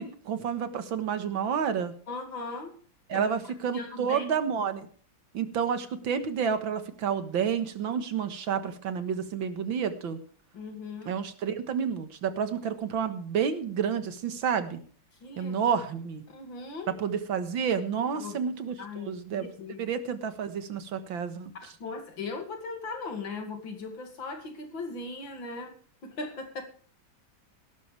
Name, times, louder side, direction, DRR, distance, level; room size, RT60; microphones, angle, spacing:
voice 1, 0.0-1.9 3.1-4.9 5.3-10.2 11.1-14.8 15.4-16.2 17.0-18.7 19.0-19.5 19.8-21.5, right 7 dB, 80° right, 10 dB, 2.2 m, -30 dB
voice 2, 2.1-2.8 3.1-3.4 3.7-4.3 10.5-11.1 15.2-15.6 16.3-17.0 18.1-18.4 18.8-19.9 21.6-25.8 26.0-26.6, left 3 dB, 75° left, 6 dB, 3.1 m, -38 dB
17.0 x 12.5 x 3.4 m, 0.44 s
omnidirectional pair, 2.1 m